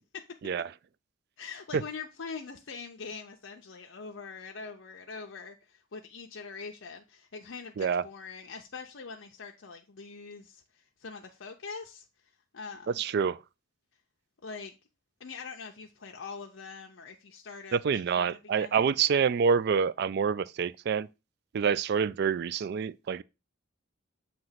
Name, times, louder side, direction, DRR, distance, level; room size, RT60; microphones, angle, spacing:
voice 1, 1.4-12.0 12.5-13.0 14.4-14.7 15.2-18.9, left 5 dB, 70° left, 0.7 m, -43 dB
voice 2, 13.0-13.4 17.7-21.1 21.5-23.2, right 6 dB, 55° right, 0.3 m, -27 dB
7.7 x 2.9 x 5.6 m
head